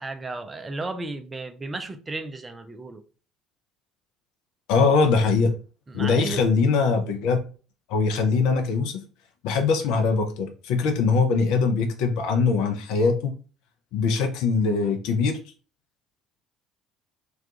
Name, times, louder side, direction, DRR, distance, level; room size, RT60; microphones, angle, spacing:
voice 1, 0.0-3.0 5.9-6.4, right 2 dB, 25° right, 0.4 m, -34 dB
voice 2, 4.7-5.5 5.9-7.4 7.9-9.0 9.4-13.3 13.9-15.4, left 4 dB, 60° left, 0.5 m, -22 dB
2.3 x 2.2 x 2.7 m
figure-of-eight pair, 55°, 0 cm